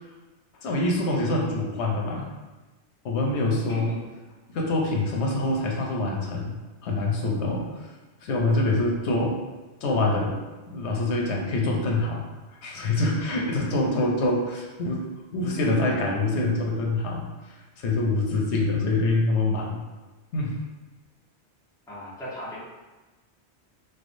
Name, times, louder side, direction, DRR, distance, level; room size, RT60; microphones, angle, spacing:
voice 1, 0.6-2.3 3.0-3.9 4.5-7.7 8.2-9.4 9.8-10.4 10.7-12.3 12.6-15.0 15.3-17.3 17.8-19.8 20.3-20.6, left 2 dB, 80° left, -1 dB, 0.9 m, -25 dB
voice 2, 3.7-4.0 21.9-22.6, left 1 dB, 5° left, -10 dB, 1.1 m, -37 dB
4.0 x 3.4 x 2.6 m, 1.2 s
omnidirectional pair, 1.1 m